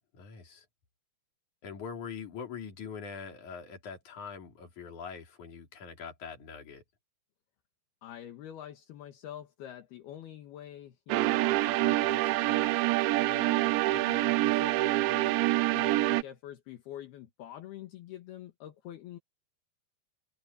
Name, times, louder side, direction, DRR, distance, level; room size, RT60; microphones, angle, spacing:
voice 1, 0.1-0.7 1.6-6.8, left 6 dB, 45° left, 4.6 m, -43 dB
voice 2, 8.0-15.4 15.7-19.2, left 11 dB, 65° left, 3.3 m, -46 dB
sound 1, 11.1-16.2, right 18 dB, 80° right, 2.9 m, -26 dB
omnidirectional pair, 5.2 m